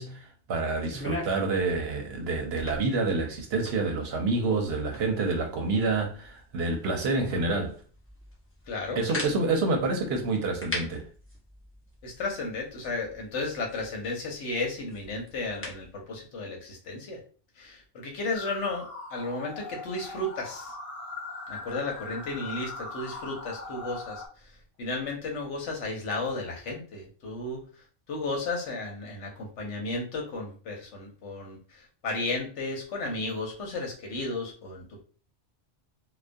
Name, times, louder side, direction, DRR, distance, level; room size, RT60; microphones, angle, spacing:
voice 1, 0.0-7.8 9.0-11.0, right 3 dB, 65° right, 0.8 m, -28 dB
sound 1, 0.7-15.9, left 2 dB, 15° left, 0.5 m, -43 dB
voice 2, 8.7-9.0 12.0-17.2 17.6-20.7 21.5-24.5 24.8-27.6 28.1-35.0, left 2 dB, 80° left, 1.0 m, -34 dB
sound 2, 18.3-24.3, left 3 dB, 60° left, 0.7 m, -40 dB
2.3 x 2.2 x 2.5 m
omnidirectional pair, 1.2 m